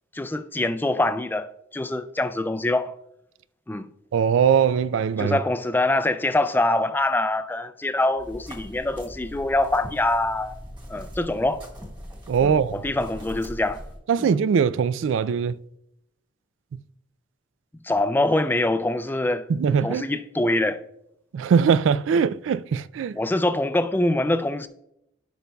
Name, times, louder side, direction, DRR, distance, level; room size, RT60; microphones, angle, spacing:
voice 1, 0.1-1.5 1.7-2.9 3.7-3.9 5.2-10.6 10.9-11.6 12.4-13.8 14.2-14.3 17.8-19.5 19.8-20.8 23.1-24.7, left 2 dB, 10° left, 0.4 m, -24 dB
voice 2, 4.1-5.4 12.3-12.8 14.1-15.6 19.5-20.0 21.3-23.2, right 6 dB, 80° right, 0.3 m, -21 dB
sound 1, 8.2-14.0, equal, 25° right, 1.5 m, -41 dB
15.5 x 5.2 x 2.3 m
head